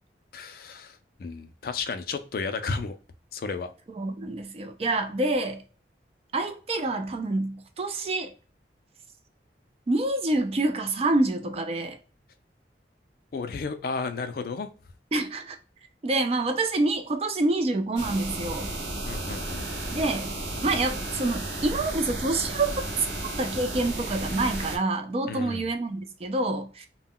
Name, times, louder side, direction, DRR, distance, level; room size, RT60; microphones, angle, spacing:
voice 1, 0.3-2.9 3.3-3.7 13.3-14.7 19.0-19.7 25.3-25.7, left 4 dB, 55° left, 0.3 m, -33 dB
voice 2, 3.9-5.6 6.3-8.3 9.9-12.0 15.1-15.6 16.0-18.7 19.9-20.3 20.6-22.7 23.4-26.9, right 2 dB, 35° right, 0.3 m, -27 dB
sound 1, 18.0-24.8, right 1 dB, 75° right, 0.7 m, -33 dB
2.1 x 2.1 x 3.6 m
head